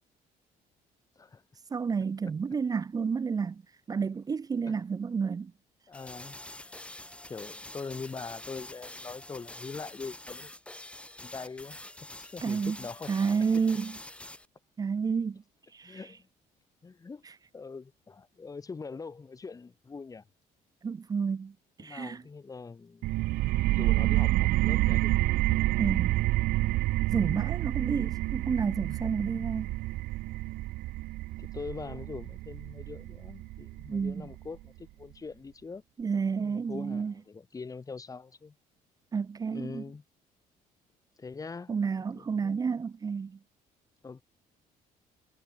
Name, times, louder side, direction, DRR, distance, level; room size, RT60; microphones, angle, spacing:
voice 1, 1.7-3.6 3.9-5.5 12.4-12.8 13.1-14.0 14.8-15.4 15.7-16.0 20.8-21.5 21.8-22.2 25.8-26.1 27.1-29.8 33.9-34.2 36.0-37.1 39.1-39.8 41.7-43.4, right 5 dB, 25° right, 0.6 m, -30 dB
voice 2, 5.9-6.4 7.3-10.5 11.2-11.8 12.2-13.3 15.8-16.3 16.8-17.2 17.5-20.2 21.8-23.1 23.7-25.1 25.5-25.6 27.9-28.2 31.4-35.8 36.4-38.5 39.5-40.0 41.2-41.8 42.1-42.6 44.0-44.2, left 4 dB, 25° left, 2.6 m, -43 dB
sound 1, 5.9-14.5, left 1 dB, 10° left, 2.2 m, -46 dB
sound 2, 23.0-34.4, right 19 dB, 80° right, 0.5 m, -28 dB
cardioid pair, 120°, 15 cm